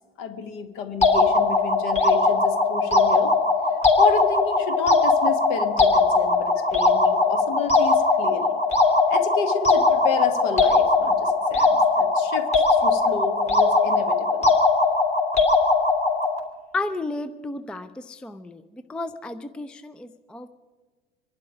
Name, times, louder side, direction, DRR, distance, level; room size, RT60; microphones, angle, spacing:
voice 1, 0.2-3.4 4.0-8.6 9.1-14.5, left 5 dB, 50° left, 10 dB, 1.6 m, -30 dB
sound 1, 1.0-16.4, left 3 dB, 20° left, 2.9 m, -20 dB
voice 2, 16.7-18.6 18.9-20.5, left 2 dB, 5° left, 11 dB, 0.4 m, -32 dB
25.5 x 11.5 x 5.0 m, 1.4 s
figure-of-eight pair, 75°, 30 cm